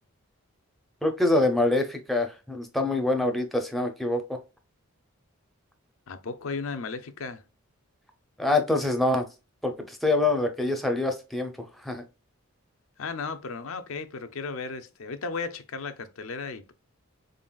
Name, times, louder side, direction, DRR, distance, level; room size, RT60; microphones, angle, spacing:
voice 1, 1.0-4.4 8.4-9.3 9.6-11.5 11.8-12.0, left 2 dB, ahead, 0.5 m, -25 dB
voice 2, 6.1-7.4 13.0-16.7, left 4 dB, 70° left, 0.5 m, -35 dB
3.8 x 3.8 x 2.3 m
head